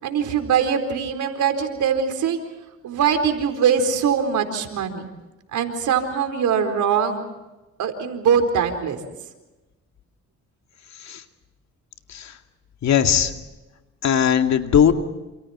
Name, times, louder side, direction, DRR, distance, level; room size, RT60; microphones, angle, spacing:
voice 1, 0.0-2.4 2.8-5.1 5.5-7.2 7.8-9.0, right 7 dB, 75° right, 6 dB, 4.4 m, -22 dB
voice 2, 12.8-13.3 14.0-14.9, left 8 dB, 65° left, 6 dB, 2.3 m, -18 dB
29.0 x 28.5 x 4.4 m, 1.1 s
cardioid pair, 90°, 30 cm